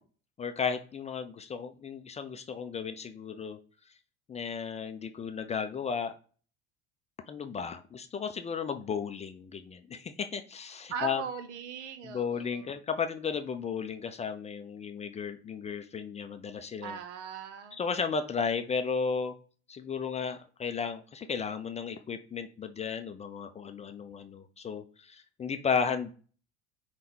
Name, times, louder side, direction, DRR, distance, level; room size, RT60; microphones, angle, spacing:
voice 1, 0.4-3.6 4.3-6.1 7.3-11.2 12.0-17.0 17.7-19.4 19.7-26.1, left 6 dB, 20° left, 8 dB, 0.3 m, -34 dB
voice 2, 10.9-12.8 16.8-17.8, right 7 dB, 75° right, 10 dB, 0.7 m, -39 dB
5.5 x 2.2 x 4.1 m, 0.40 s
hypercardioid pair, 70°, 35 cm